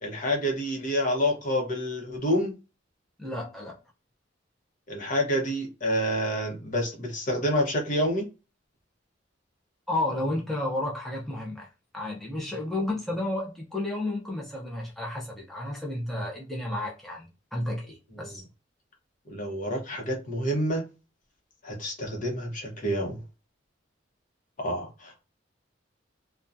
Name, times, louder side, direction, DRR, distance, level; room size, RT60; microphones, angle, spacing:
voice 1, 0.0-2.5 4.9-8.3 18.1-18.4 19.3-20.9 21.6-23.2 24.6-25.3, equal, 45° left, 0.9 m, -28 dB
voice 2, 3.2-3.8 9.9-11.7 11.9-18.4, left 1 dB, ahead, 0.5 m, -32 dB
2.7 x 2.2 x 2.4 m
head